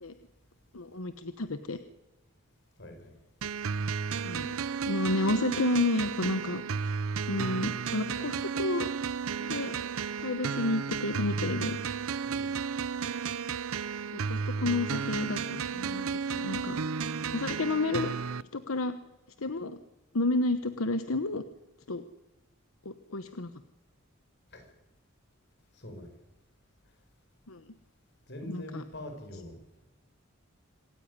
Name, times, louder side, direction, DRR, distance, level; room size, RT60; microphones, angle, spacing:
voice 1, 0.7-1.8 4.2-4.5 4.9-6.9 7.3-8.9 9.4-9.8 10.2-11.8 14.1-16.8 17.3-18.1 18.5-19.0 19.4-19.8 20.1-21.4 21.9-22.0 22.8-23.5 27.5-27.6 28.4-28.8, left 2 dB, 80° left, 1.1 m, -31 dB
voice 2, 2.8-3.1 12.3-12.6 24.5-24.7 25.7-26.1 28.3-29.8, left 1 dB, 55° left, 5.9 m, -44 dB
sound 1, 3.4-18.4, right 6 dB, 80° right, 0.7 m, -33 dB
26.5 x 15.0 x 9.8 m
head